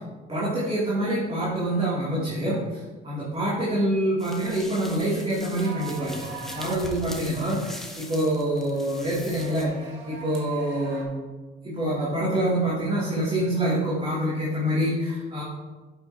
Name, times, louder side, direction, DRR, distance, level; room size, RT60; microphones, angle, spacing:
voice 1, 0.3-11.3 11.6-15.4, right 1 dB, 30° right, -8 dB, 2.6 m, -26 dB
sound 1, 4.2-9.6, equal, ahead, 1.3 m, -42 dB
sound 2, 5.6-11.0, right 5 dB, 75° right, 2.0 m, -43 dB
9.2 x 8.0 x 2.8 m, 1.3 s
cardioid pair, 90°, 20 cm